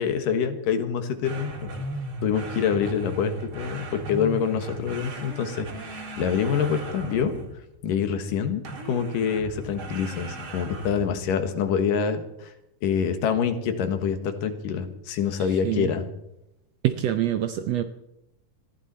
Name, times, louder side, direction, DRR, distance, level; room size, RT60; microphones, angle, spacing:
voice 1, 0.0-1.5 2.2-7.3 7.8-12.5 12.8-16.1, left 7 dB, 85° left, 8 dB, 3.1 m, -26 dB
sound 1, 1.2-7.7 8.6-11.2, right 2 dB, 45° right, 2.5 m, -36 dB
voice 2, 15.4-15.9 16.8-17.8, right 12 dB, 75° right, 9 dB, 1.6 m, -26 dB
19.5 x 15.5 x 4.3 m, 0.86 s
omnidirectional pair, 3.8 m